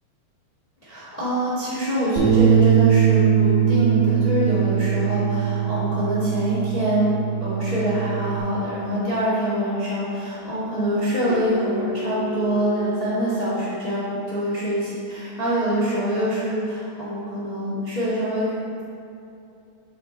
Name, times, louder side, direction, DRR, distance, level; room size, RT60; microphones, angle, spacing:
voice 1, 0.8-7.1 7.4-18.4, right 1 dB, 50° left, -11 dB, 0.4 m, -25 dB
Bass guitar, 2.2-8.4, right 8 dB, 50° right, 1.1 m, -20 dB
Keyboard (musical), 11.3-14.1, left 1 dB, 80° right, 1.8 m, -33 dB
6.6 x 5.0 x 4.2 m, 2.6 s
omnidirectional pair, 3.8 m